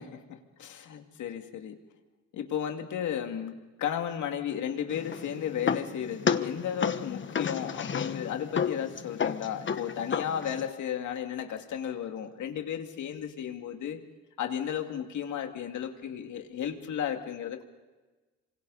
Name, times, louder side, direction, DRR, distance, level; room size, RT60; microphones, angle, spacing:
voice 1, 0.0-1.8 2.3-14.0 14.4-17.6, left 9 dB, 75° left, 5 dB, 2.5 m, -34 dB
sound 1, 4.9-10.7, left 7 dB, 40° left, 1.1 m, -32 dB
27.0 x 25.5 x 4.2 m, 1.2 s
cardioid pair, 90°, 30 cm